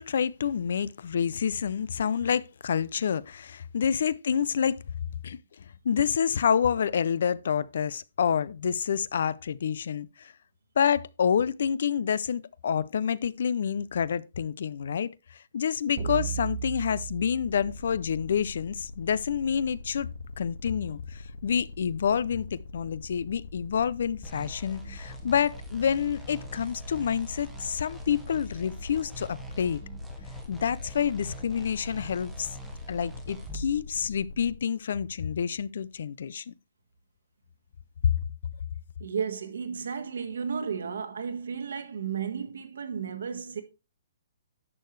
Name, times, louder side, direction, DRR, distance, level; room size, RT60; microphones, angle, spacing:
voice 1, 0.0-4.8 5.2-10.3 10.8-20.1 20.4-29.8 30.5-32.6 32.9-36.5, left 7 dB, 55° left, 0.4 m, -28 dB
sound 1, 16.0-18.4, right 8 dB, 30° right, 1.0 m, -36 dB
sound 2, 17.4-34.5, left 4 dB, 80° left, 1.8 m, -43 dB
sound 3, 24.2-33.7, right 2 dB, ahead, 0.9 m, -45 dB
voice 2, 39.0-43.6, right 6 dB, 70° right, 1.4 m, -33 dB
11.0 x 6.6 x 3.2 m
hypercardioid pair, 175°, 0 cm